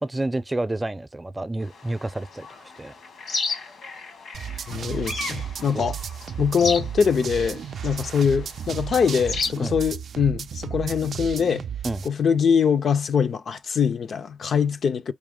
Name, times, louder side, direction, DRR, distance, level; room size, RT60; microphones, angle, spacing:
voice 1, 0.0-2.9 5.7-5.9 6.6-6.8 9.6-9.8 11.8-12.0, right 2 dB, 20° right, 0.5 m, -29 dB
sound 1, 1.7-9.5, left 4 dB, 85° left, 1.3 m, -34 dB
sound 2, 4.3-12.1, right 8 dB, 75° right, 0.4 m, -33 dB
voice 2, 4.7-6.0 6.4-11.7 12.0-15.1, left 6 dB, 70° left, 0.5 m, -23 dB
4.9 x 2.8 x 3.7 m
cardioid pair, 85°, 0 cm